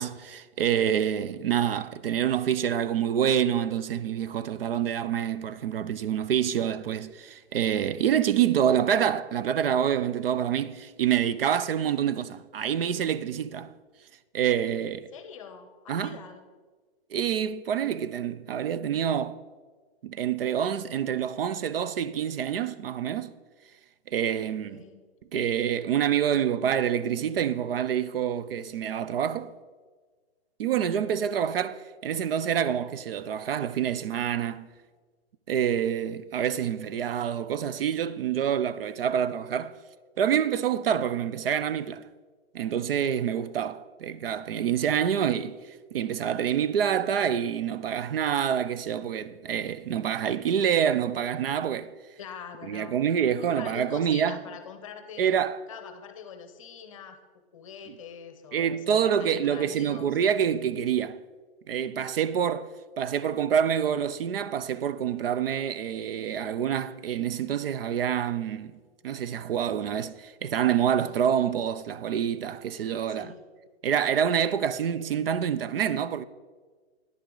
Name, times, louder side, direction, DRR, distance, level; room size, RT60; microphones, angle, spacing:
voice 1, 0.0-13.7 14.3-15.1 15.9-16.2 17.1-19.4 20.0-23.3 24.1-24.8 25.3-29.5 30.6-34.7 35.5-39.7 40.2-42.0 42.5-45.6 45.9-51.9 52.7-54.4 55.2-55.6 58.5-61.2 61.7-62.7 63.0-68.7 69.0-73.3 73.8-76.2, right 9 dB, 60° right, 0.5 m, -27 dB
voice 2, 15.1-16.4 24.7-25.0 52.2-53.0 53.5-55.4 55.7-57.2 57.5-60.1 73.1-73.4, left 7 dB, 30° left, 0.7 m, -44 dB
10.5 x 10.0 x 3.8 m
hypercardioid pair, 170°, 32 cm